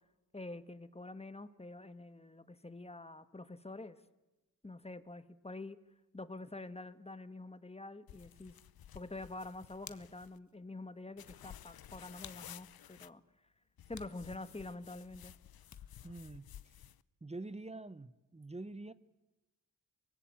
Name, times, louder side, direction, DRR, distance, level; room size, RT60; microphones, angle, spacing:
voice 1, 0.3-4.0 4.6-5.8 6.1-8.6 8.9-13.2 13.9-15.3, left 2 dB, 15° left, 13 dB, 1.4 m, -47 dB
sound 1, 8.1-10.4 11.2-13.1 13.8-17.0, left 11 dB, 85° left, 0.8 m, -54 dB
Hands, 9.2-16.1, left 6 dB, 50° left, 1.4 m, -59 dB
voice 2, 16.0-16.5 17.2-18.9, right 2 dB, 20° right, 16 dB, 0.9 m, -46 dB
24.0 x 19.0 x 8.9 m, 1.1 s
wide cardioid pair, 85°, 36 cm